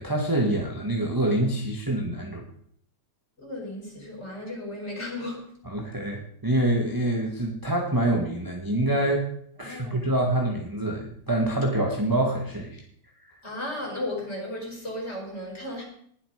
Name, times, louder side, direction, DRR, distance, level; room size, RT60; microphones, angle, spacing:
voice 1, 0.0-2.4 5.6-9.3 9.6-12.8 13.3-13.4, right 1 dB, 10° right, 1.3 m, -26 dB
voice 2, 3.4-5.5 9.6-10.0 13.4-15.8, left 1 dB, 20° left, 5.3 m, -35 dB
19.5 x 7.9 x 5.1 m
omnidirectional pair, 3.3 m